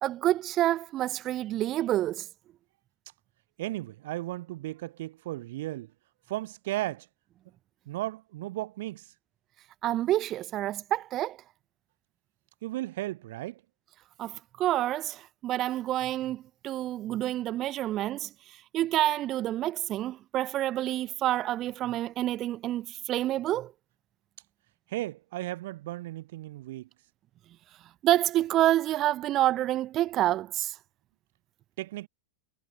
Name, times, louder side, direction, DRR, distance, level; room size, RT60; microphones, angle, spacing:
voice 1, 0.0-2.3 9.8-11.4 14.2-18.3 18.7-23.7 28.0-30.7, right 14 dB, 35° right, 2.1 m, -28 dB
voice 2, 3.6-5.9 6.3-7.1 7.9-9.1 12.6-13.6 24.9-26.9 31.8-32.1, right 16 dB, 55° right, 4.8 m, -35 dB
figure-of-eight pair, 90°, 0 cm